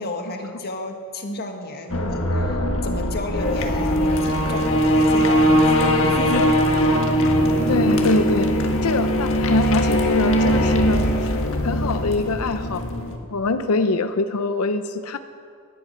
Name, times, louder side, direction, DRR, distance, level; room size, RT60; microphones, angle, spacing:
voice 1, 0.0-2.5 2.8-6.6, left 2 dB, 45° left, 4 dB, 1.7 m, -32 dB
sound 1, 1.9-13.2, equal, 65° left, 1.6 m, -20 dB
voice 2, 7.7-8.5 8.8-11.3 11.6-12.8 13.3-15.2, left 3 dB, 80° left, 10 dB, 0.6 m, -24 dB
18.5 x 11.5 x 5.7 m, 2.3 s
head